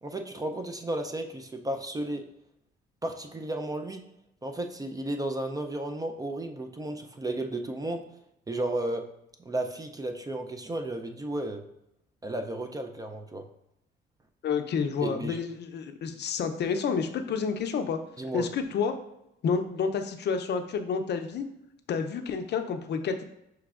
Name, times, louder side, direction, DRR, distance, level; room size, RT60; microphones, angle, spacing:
voice 1, 0.0-2.2 3.0-4.0 4.4-8.0 8.5-9.0 9.4-11.6 12.2-13.4 15.0-15.4 18.2-18.5, right 1 dB, 20° right, 5 dB, 0.4 m, -33 dB
voice 2, 14.4-18.0 18.3-19.0 19.4-21.5 21.9-23.2, left 6 dB, 60° left, 7 dB, 0.5 m, -29 dB
5.9 x 3.1 x 2.4 m, 0.83 s
cardioid pair, 90°, 20 cm